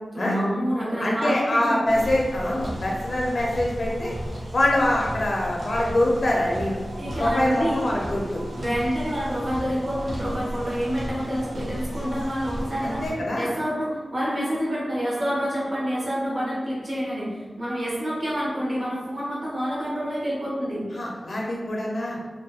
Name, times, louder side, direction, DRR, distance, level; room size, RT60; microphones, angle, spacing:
voice 1, 0.1-2.0 7.0-7.8 8.6-13.0 13.4-20.8, equal, 40° right, -7 dB, 1.0 m, -28 dB
voice 2, 1.0-4.1 4.5-6.8 7.2-8.4 12.8-13.5 20.9-22.2, left 1 dB, 55° left, -2 dB, 0.4 m, -24 dB
sound 1, 1.8-13.1, equal, 90° right, 0.6 m, -34 dB
2.6 x 2.2 x 2.7 m, 1.3 s
wide cardioid pair, 90°, 0 cm